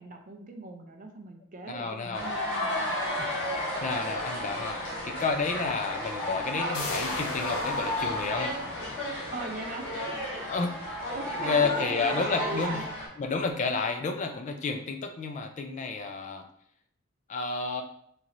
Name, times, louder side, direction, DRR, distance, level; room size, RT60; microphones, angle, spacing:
voice 1, 0.0-2.9 9.3-10.5 10.8-12.8, right 2 dB, 35° right, 4 dB, 0.4 m, -40 dB
voice 2, 1.7-2.3 2.9-3.3 3.8-8.5 10.5-10.8 11.4-12.8 13.2-16.4 17.3-17.8, left 4 dB, 35° left, 5 dB, 0.3 m, -31 dB
sound 1, 2.1-13.1, left 1 dB, 55° left, 1.5 m, -33 dB
sound 2, 6.7-12.2 12.6-12.7, left 2 dB, 80° left, 0.6 m, -40 dB
4.1 x 3.0 x 2.5 m, 0.67 s
head